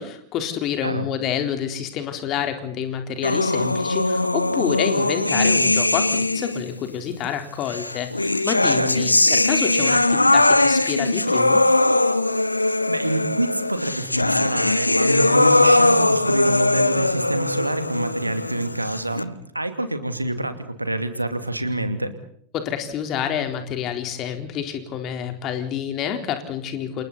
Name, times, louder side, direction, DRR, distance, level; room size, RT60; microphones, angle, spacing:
voice 1, 0.0-11.6 22.5-27.0, left 9 dB, 35° left, 6 dB, 4.0 m, -28 dB
sound 1, 3.2-6.7 7.7-19.2, left 2 dB, 85° left, 1.0 m, -20 dB
voice 2, 12.9-22.1, right 1 dB, 85° right, 9 dB, 2.6 m, -27 dB
29.0 x 29.0 x 4.2 m, 0.62 s
figure-of-eight pair, 90°, 0 cm